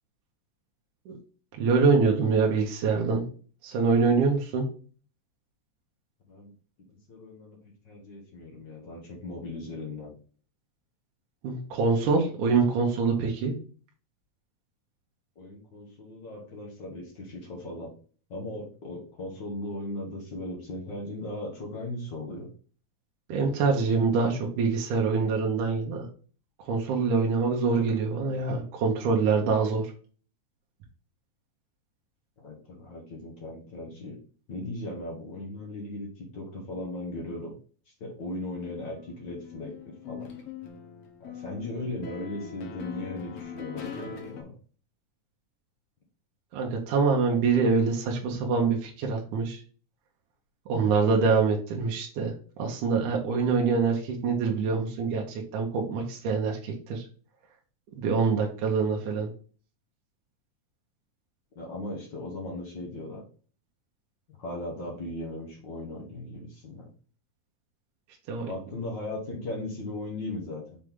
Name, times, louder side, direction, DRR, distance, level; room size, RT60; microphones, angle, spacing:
voice 1, 1.6-3.2 3.6-4.7 11.4-13.5 23.3-26.1 26.6-29.9 46.5-49.6 50.7-57.0 58.0-59.3 68.3-68.5, right 4 dB, 70° right, 0 dB, 2.2 m, -25 dB
voice 2, 7.1-7.6 7.8-10.1 15.3-17.9 18.3-22.5 32.4-34.2 34.5-37.5 38.0-40.3 41.2-44.5 61.5-63.2 64.4-66.9 68.5-70.8, left 2 dB, 55° left, -1 dB, 1.3 m, -37 dB
sound 1, 38.5-44.4, left 7 dB, 70° left, 1.5 m, -42 dB
6.5 x 4.1 x 3.6 m, 0.41 s
omnidirectional pair, 4.1 m